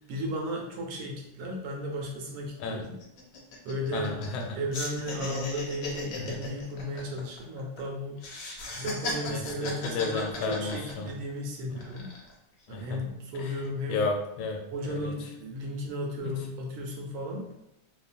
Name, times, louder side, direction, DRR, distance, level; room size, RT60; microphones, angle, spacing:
voice 1, 0.1-3.0 3.6-4.1 4.5-8.2 8.7-12.1 12.7-14.1 14.7-17.5, equal, 80° right, 1 dB, 1.4 m, -35 dB
sound 1, 1.9-2.0 2.3-2.5 2.8-4.4 4.7-7.8 8.2-11.3 11.8-12.3, left 3 dB, 70° left, 1.2 m, -37 dB
voice 2, 3.9-4.6 6.2-6.4 9.3-11.1 11.6-12.0 12.7-13.0 13.4-13.6 13.9-15.1 16.2-16.3, left 3 dB, 85° left, 3 dB, 1.4 m, -33 dB
3.3 x 2.2 x 2.5 m, 0.83 s
omnidirectional pair, 2.2 m